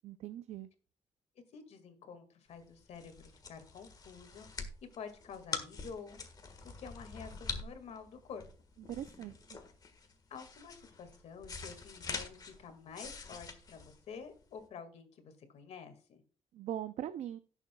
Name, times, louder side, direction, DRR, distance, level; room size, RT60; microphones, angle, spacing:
voice 1, 0.0-0.7 8.9-9.6 16.5-17.4, right 11 dB, 75° right, 12 dB, 0.5 m, -41 dB
voice 2, 1.4-4.7 5.0-6.2 6.8-8.4 10.3-16.2, left 6 dB, 75° left, 7 dB, 2.0 m, -49 dB
sound 1, 2.6-14.6, left 4 dB, 35° left, 1.5 m, -45 dB
17.0 x 7.1 x 2.3 m, 0.37 s
cardioid pair, 135°, 12 cm